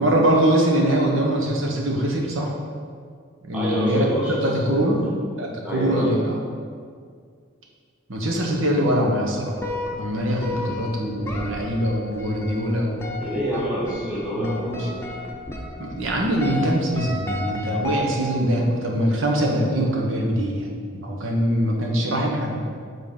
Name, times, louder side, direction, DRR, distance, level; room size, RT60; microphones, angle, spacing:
voice 1, 0.0-2.5 3.5-5.1 5.4-6.4 8.1-9.6 10.0-13.1 14.3-14.9 15.8-22.6, right 1 dB, 80° right, -1 dB, 1.2 m, -23 dB
voice 2, 3.5-5.0 5.6-6.2 13.2-15.0, equal, 5° right, -7 dB, 1.5 m, -27 dB
sound 1, 9.6-18.6, left 2 dB, 10° left, 0.8 m, -33 dB
7.5 x 4.0 x 5.4 m, 2.1 s
head